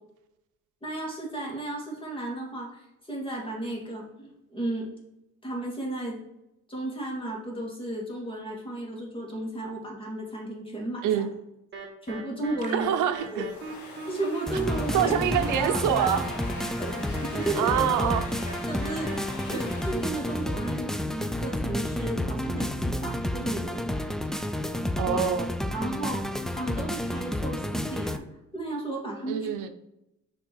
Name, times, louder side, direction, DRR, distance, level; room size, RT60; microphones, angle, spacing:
voice 1, 0.8-4.9 5.4-6.2 6.7-11.1 12.0-12.9 13.3-13.4 14.1-15.2 15.6-16.2 16.8-17.7 18.6-24.6 25.1-25.2 25.7-28.3 28.5-29.5, right 2 dB, 15° left, -2 dB, 2.4 m, -34 dB
sound 1, 11.7-19.2, right 2 dB, 40° right, 1.4 m, -40 dB
voice 2, 12.7-13.5 14.9-16.3 17.5-18.3 25.0-25.5 29.3-29.7, right 9 dB, 85° right, 9 dB, 0.7 m, -25 dB
Domestic sounds home sounds, 13.2-21.6, left 3 dB, 75° left, 2.0 m, -44 dB
sound 2, 14.5-28.2, left 1 dB, ahead, 0.4 m, -30 dB
6.2 x 3.6 x 4.7 m, 0.88 s
cardioid pair, 90°, 30 cm